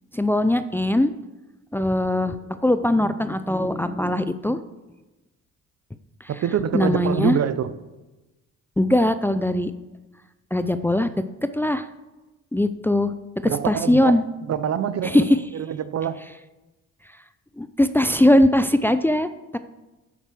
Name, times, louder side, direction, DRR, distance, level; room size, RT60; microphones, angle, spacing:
voice 1, 0.1-1.1 1.7-4.6 6.7-7.4 8.8-9.7 10.5-11.1 11.5-11.9 12.5-13.1 13.6-14.2 15.0-15.4 17.6-19.6, left 1 dB, 5° left, 11 dB, 0.5 m, -20 dB
voice 2, 6.3-7.7 13.4-15.3 15.5-16.2, right 9 dB, 55° right, 14 dB, 0.7 m, -25 dB
8.9 x 8.1 x 6.1 m, 1.1 s
cardioid pair, 90°, 30 cm